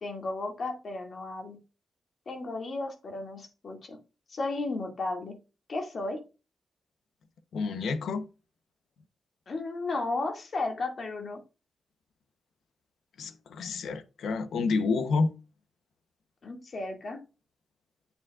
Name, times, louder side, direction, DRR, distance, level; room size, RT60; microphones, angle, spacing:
voice 1, 0.0-1.6 2.3-4.0 4.3-5.4 5.7-6.2 9.5-11.4 16.4-17.2, left 2 dB, 50° left, 2.2 m, -34 dB
voice 2, 7.5-8.3 13.2-15.4, left 4 dB, 85° left, 0.9 m, -29 dB
8.6 x 7.1 x 2.4 m
wide cardioid pair, 115°, 0 cm